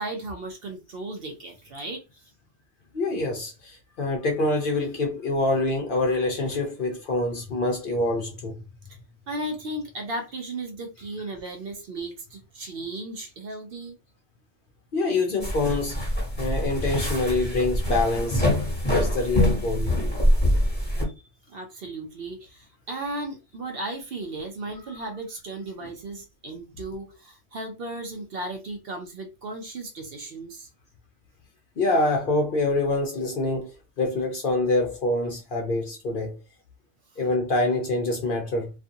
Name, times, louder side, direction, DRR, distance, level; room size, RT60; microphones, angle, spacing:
voice 1, 0.0-2.0 9.3-14.0 21.5-30.7, right 2 dB, 60° right, 0.7 m, -35 dB
voice 2, 2.9-8.6 14.9-16.1 16.3-18.4 18.9-20.0 24.8-24.9 25.8-25.9 31.8-36.4 37.2-38.7, left 2 dB, 55° left, 0.6 m, -26 dB
sound 1, 15.4-21.0, left 1 dB, 10° left, 1.1 m, -24 dB
2.5 x 2.5 x 2.6 m
omnidirectional pair, 1.3 m